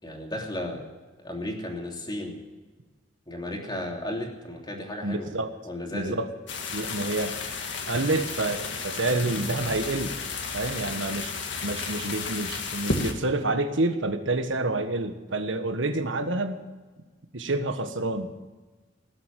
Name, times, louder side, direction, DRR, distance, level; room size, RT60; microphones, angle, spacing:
voice 1, 0.0-0.9 1.2-2.3 3.3-5.3 5.6-6.1, left 1 dB, 25° left, 0 dB, 3.1 m, -34 dB
voice 2, 5.0-5.5 5.9-6.3 6.7-7.4 7.9-10.1 10.5-11.4 11.6-16.7 17.3-18.3, right 2 dB, 85° right, 8 dB, 1.4 m, -28 dB
sound 1, 6.5-13.1, left 4 dB, 65° left, 2.0 m, -33 dB
18.5 x 7.9 x 9.1 m, 1.3 s
head